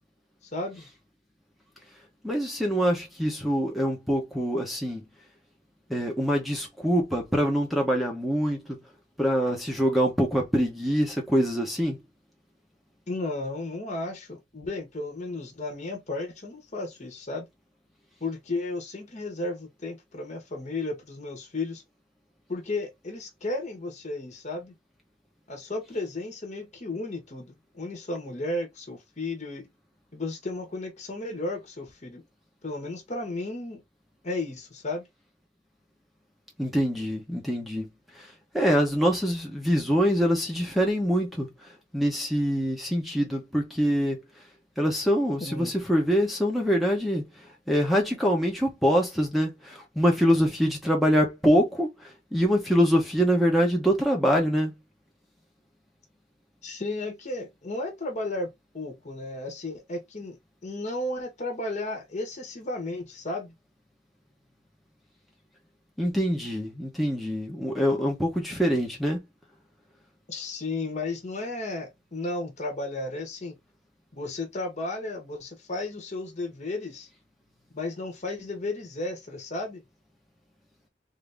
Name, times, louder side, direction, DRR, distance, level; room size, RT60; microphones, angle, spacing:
voice 1, 0.5-0.9 13.1-17.4 18.2-21.8 22.5-24.7 25.5-29.7 30.1-32.2 32.6-33.8 34.2-35.0 45.4-45.7 56.6-58.5 58.7-60.3 60.6-63.5 70.3-73.5 74.1-77.1 77.7-79.8, left 2 dB, 40° left, 1.3 m, -34 dB
voice 2, 2.2-5.0 5.9-8.8 9.2-12.0 36.6-37.9 38.1-44.2 44.8-54.7 66.0-69.2, equal, ahead, 0.9 m, -25 dB
3.7 x 2.7 x 3.4 m
head